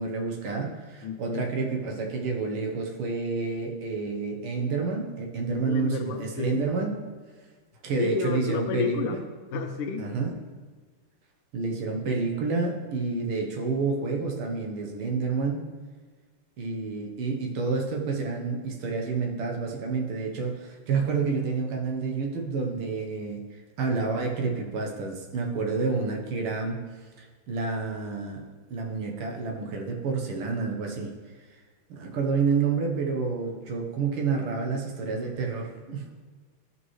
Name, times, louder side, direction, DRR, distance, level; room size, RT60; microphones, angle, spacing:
voice 1, 0.0-7.0 7.8-9.2 10.0-10.3 11.5-15.7 16.6-23.4 23.8-26.8 27.2-31.1 31.9-36.2, right 4 dB, 75° right, 1 dB, 1.9 m, -29 dB
voice 2, 1.0-1.5 5.5-6.6 8.0-9.2 9.5-10.1, left 5 dB, 80° left, 4 dB, 1.8 m, -31 dB
14.0 x 5.5 x 3.1 m, 1.5 s
omnidirectional pair, 2.4 m